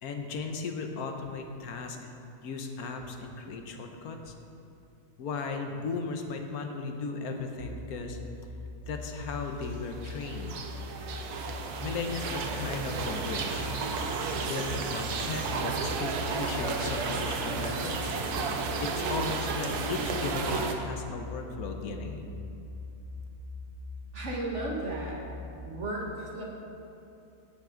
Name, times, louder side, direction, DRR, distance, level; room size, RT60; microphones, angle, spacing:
voice 1, 0.0-2.0 2.4-4.3 5.2-8.2 8.9-10.7 11.8-13.6 14.4-18.1 18.8-22.3, left 4 dB, 80° left, 4 dB, 1.3 m, -36 dB
sound 1, 7.6-25.6, left 2 dB, 35° left, 1.5 m, -42 dB
sound 2, 9.6-20.7, right 4 dB, 90° right, 1.3 m, -33 dB
voice 2, 24.1-25.2 25.6-26.4, right 2 dB, 50° right, -2 dB, 1.6 m, -34 dB
16.0 x 5.9 x 3.8 m, 2.8 s
omnidirectional pair, 1.6 m